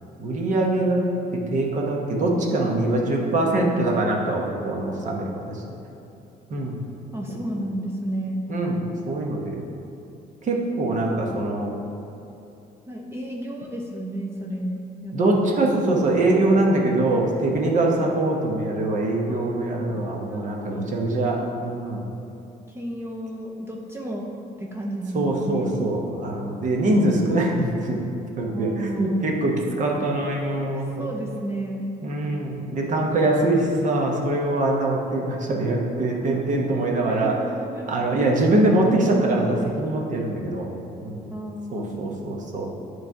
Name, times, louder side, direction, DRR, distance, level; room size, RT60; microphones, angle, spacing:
voice 1, 0.2-1.0 1.5-5.6 6.5-6.8 8.5-8.8 9.1-9.5 10.4-11.7 15.1-22.0 25.1-28.0 28.4-29.5 29.8-30.8 32.0-37.3 37.9-40.7 41.0-41.3 41.7-42.7, right 2 dB, 45° right, -1 dB, 1.0 m, -23 dB
voice 2, 7.1-8.5 12.9-15.2 19.3-20.0 20.3-21.0 22.7-24.3 24.6-25.7 28.5-29.2 30.6-31.9 37.1-38.3 41.3-42.1, right 1 dB, 15° right, -2 dB, 0.6 m, -32 dB
8.7 x 3.2 x 4.7 m, 2.8 s
cardioid pair, 110°, 17 cm